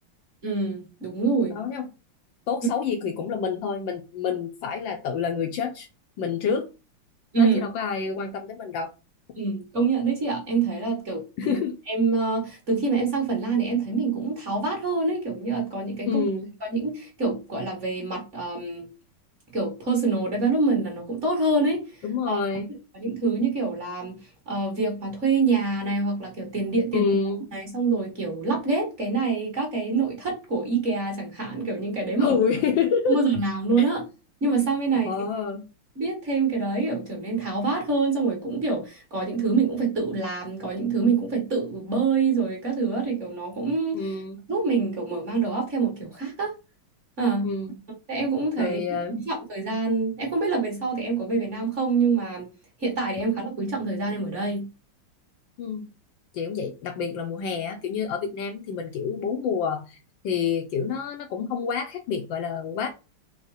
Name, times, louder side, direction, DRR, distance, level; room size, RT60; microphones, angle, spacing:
voice 1, 0.4-1.6 7.3-7.6 9.3-11.6 11.9-16.2 16.7-18.8 19.5-22.4 22.9-24.2 24.5-27.1 27.5-32.4 33.1-34.0 34.4-35.3 36.0-44.1 44.5-46.5 47.2-47.5 48.1-52.5 52.8-54.7, right 4 dB, 40° right, 1.4 m, -26 dB
voice 2, 1.6-1.9 2.5-5.9 6.2-6.7 7.4-8.9 11.4-11.8 16.1-16.5 22.0-22.7 26.9-27.5 32.2-33.2 33.8-33.9 35.0-35.7 43.9-44.4 47.4-47.8 48.6-49.2 55.6-55.9 56.3-60.0 60.2-62.9, left 6 dB, 75° left, 1.2 m, -28 dB
4.6 x 2.1 x 4.0 m
omnidirectional pair, 2.3 m